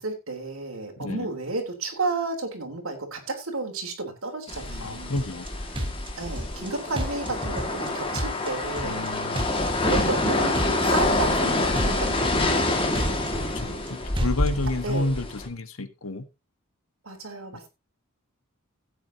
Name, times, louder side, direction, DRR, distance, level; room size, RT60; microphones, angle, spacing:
voice 1, 0.0-5.2 6.2-9.1 9.6-12.8 14.8-15.2 17.0-17.7, right 3 dB, 80° right, 2 dB, 3.4 m, -32 dB
voice 2, 1.0-1.3 4.8-5.5 5.8-5.9 8.8-9.5 13.1-16.3, left 2 dB, 80° left, 10 dB, 1.4 m, -31 dB
sound 1, 4.5-15.5, left 2 dB, 25° left, 2.0 m, -27 dB
sound 2, 5.2-5.5 5.7-6.7 7.0-7.9 8.1-9.1 9.4-10.3 10.5-11.5 11.8-12.7 12.9-13.9 14.2-14.8, equal, 25° right, 1.6 m, -32 dB
16.0 x 8.8 x 2.8 m, 0.24 s
head